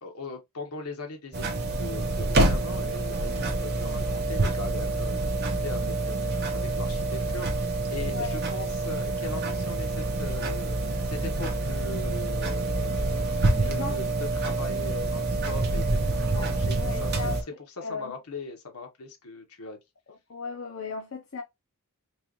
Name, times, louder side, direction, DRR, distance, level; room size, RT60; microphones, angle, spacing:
voice 1, 0.0-17.3 17.8-19.8, left 3 dB, 80° left, 1.2 m, -40 dB
sound 1, 1.3-17.4, right 2 dB, 45° right, 1.0 m, -27 dB
voice 2, 13.5-14.0 16.2-17.4 17.8-18.2 20.3-21.4, left 4 dB, 60° left, 0.7 m, -36 dB
4.5 x 2.5 x 3.0 m
head